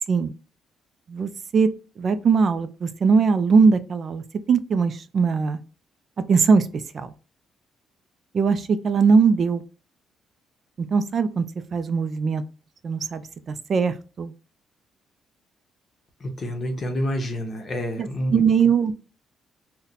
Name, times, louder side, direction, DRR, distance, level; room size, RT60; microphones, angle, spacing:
voice 1, 1.1-1.7 2.0-5.6 6.3-6.7 6.9-7.1 8.3-9.6 10.8-11.4 11.7-12.4 12.8-14.3 18.0-18.9, right 5 dB, 45° right, 12 dB, 0.3 m, -20 dB
voice 2, 16.2-18.4, equal, 35° left, 4 dB, 0.8 m, -28 dB
2.7 x 2.1 x 3.9 m, 0.36 s
cardioid pair, 115°, 0 cm